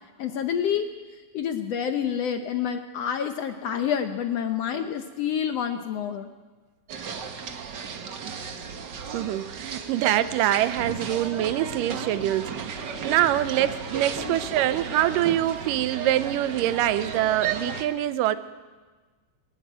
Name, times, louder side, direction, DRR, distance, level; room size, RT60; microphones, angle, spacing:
voice 1, 0.2-0.9 1.1-6.3 14.2-14.4, left 8 dB, 70° left, 7 dB, 1.6 m, -28 dB
sound 1, 6.9-17.8, right 6 dB, 55° right, 1.2 m, -34 dB
voice 2, 9.1-18.4, right 13 dB, 90° right, 13 dB, 2.4 m, -25 dB
22.0 x 13.5 x 9.2 m, 1.4 s
omnidirectional pair, 3.7 m